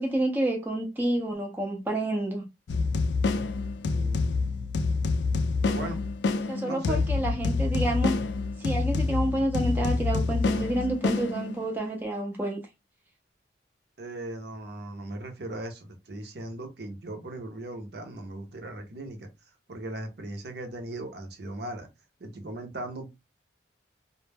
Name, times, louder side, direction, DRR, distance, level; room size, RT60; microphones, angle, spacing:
voice 1, 0.0-2.4 6.5-8.2 8.6-12.6, right 1 dB, 10° right, 0.4 m, -29 dB
sound 1, 2.7-11.8, left 3 dB, 70° left, 0.3 m, -27 dB
voice 2, 3.8-4.4 5.7-6.0 6.6-7.0 14.0-19.3 19.7-21.9 22.2-23.1, right 1 dB, 60° right, 0.6 m, -38 dB
2.1 x 2.0 x 3.2 m
head